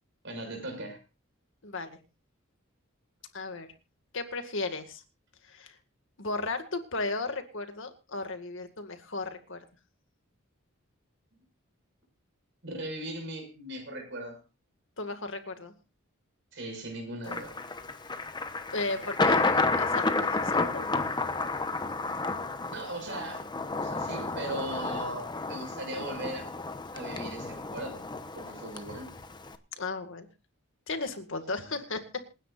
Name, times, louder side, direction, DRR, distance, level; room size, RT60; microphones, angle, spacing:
voice 1, 0.2-1.0 12.6-14.4 16.5-17.6 22.7-23.4 23.8-26.5 26.9-28.0 28.3-29.1 31.6-31.8, right 1 dB, 60° right, 4 dB, 6.0 m, -38 dB
voice 2, 1.6-2.0 3.3-3.7 4.1-5.0 5.5-5.8 6.2-9.6 15.0-15.7 18.7-20.9 29.8-30.3 30.9-32.2, left 3 dB, 65° left, 7 dB, 2.1 m, -35 dB
Thunder, 17.3-29.6, left 3 dB, 20° left, 1.0 m, -31 dB
27.5 x 9.9 x 2.5 m, 0.29 s
head